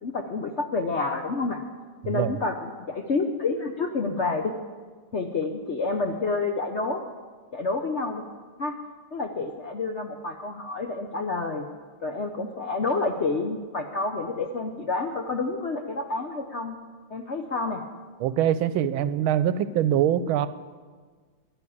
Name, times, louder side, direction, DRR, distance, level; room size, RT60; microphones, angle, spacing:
voice 1, 0.0-1.6 2.0-4.5 5.1-7.0 7.5-8.2 8.6-8.7 9.1-11.7 12.0-16.8 17.1-17.8, left 3 dB, 60° left, 4 dB, 0.7 m, -29 dB
voice 2, 18.2-20.5, right 10 dB, 90° right, 14 dB, 1.5 m, -23 dB
11.0 x 10.5 x 8.5 m, 1.5 s
omnidirectional pair, 2.2 m